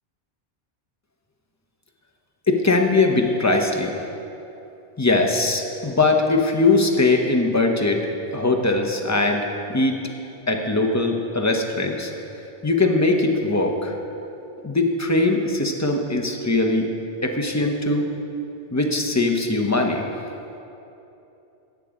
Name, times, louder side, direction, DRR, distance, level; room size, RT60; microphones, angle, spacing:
voice 1, 2.5-3.9 5.0-8.0 8.3-10.0 10.5-12.1 12.6-13.9 14.6-16.9 17.2-18.1 18.7-20.1, left 2 dB, 20° left, 3 dB, 0.8 m, -21 dB
14.0 x 9.3 x 3.7 m, 2.9 s
omnidirectional pair, 1.0 m